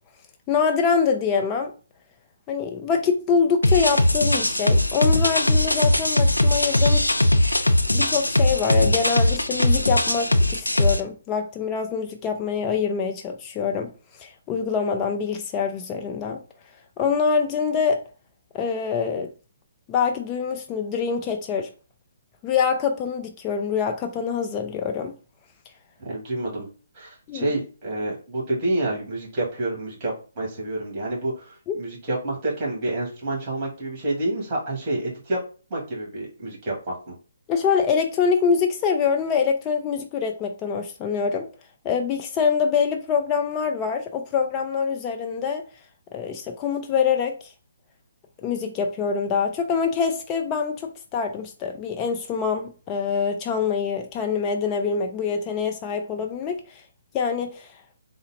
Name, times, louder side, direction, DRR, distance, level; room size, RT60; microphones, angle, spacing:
voice 1, 0.5-1.7 2.5-7.0 7.9-13.9 14.2-16.4 17.0-18.0 18.5-19.3 19.9-21.7 22.4-25.1 27.3-27.5 31.7-31.8 37.5-41.5 41.8-45.6 46.1-47.3 48.4-56.8 57.1-57.7, left 6 dB, 20° left, 0.4 m, -25 dB
sound 1, 3.6-11.0, left 1 dB, 85° left, 0.4 m, -20 dB
voice 2, 26.0-26.7 26.9-35.4 35.7-37.1, right 2 dB, 30° right, 1.8 m, -28 dB
3.8 x 2.0 x 4.0 m
figure-of-eight pair, 135°, 0 cm